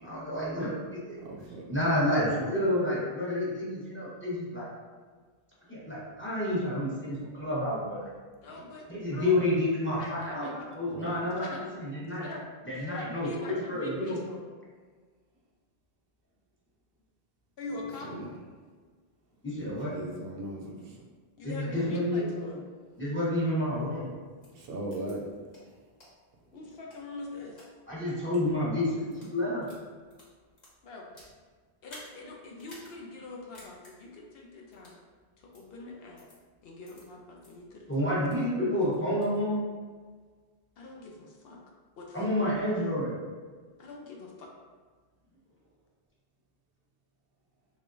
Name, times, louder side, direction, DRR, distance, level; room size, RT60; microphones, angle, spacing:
voice 1, 0.0-1.2 1.7-4.7 5.7-8.1 8.9-12.3 12.7-14.2 19.4-20.0 21.4-22.2 23.0-24.1 27.9-29.7 37.9-39.6 42.1-43.1, left 1 dB, 10° left, -7 dB, 0.8 m, -29 dB
voice 2, 1.2-1.7 8.5-8.7 10.9-11.1 18.0-18.3 19.6-21.0 24.5-25.3, right 1 dB, 65° right, 0 dB, 0.7 m, -38 dB
voice 3, 8.4-11.0 11.4-11.6 12.2-12.4 12.7-14.4 17.6-18.1 21.4-22.7 26.5-27.6 30.8-31.1 31.8-35.0 35.4-36.2 36.6-37.9 38.4-38.5 40.8-41.6 42.0-42.7 43.8-44.5, left 2 dB, 70° left, -1 dB, 0.8 m, -43 dB
sound 1, 24.4-24.5 24.9-25.1 25.5-25.6 26.0-26.1 26.7-27.7 28.2-28.4 29.0-29.3 29.6-31.3 31.8-32.1 32.6-32.9 33.2-33.3 33.5-33.9 34.7-35.0 35.5-35.6 36.2-36.4 36.8-37.0 37.4-37.5 37.9-38.5 38.8-39.4, left 1 dB, 45° left, 1.2 m, -52 dB
3.5 x 3.3 x 2.5 m, 1.5 s
omnidirectional pair, 1.1 m